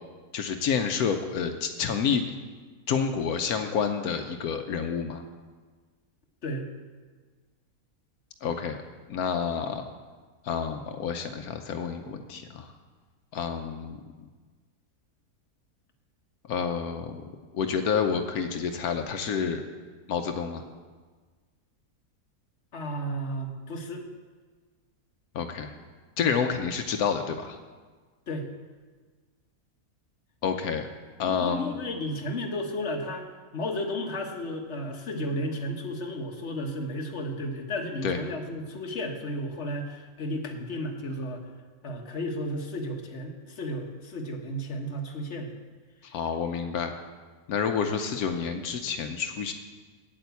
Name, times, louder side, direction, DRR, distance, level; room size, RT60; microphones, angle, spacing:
voice 1, 0.3-2.2 2.9-5.2 8.4-8.8 9.1-9.9 10.4-12.7 13.3-14.0 16.5-19.6 20.1-20.6 25.3-25.7 26.2-27.6 30.4-30.9 31.2-31.7 38.0-38.2 46.0-46.9 47.5-49.5, left 6 dB, 85° left, 6 dB, 1.2 m, -29 dB
voice 2, 22.7-24.0 28.3-28.5 31.3-33.2 33.5-41.4 41.8-45.5, equal, 50° left, 2 dB, 1.6 m, -33 dB
8.8 x 8.7 x 8.2 m, 1.4 s
omnidirectional pair, 1.5 m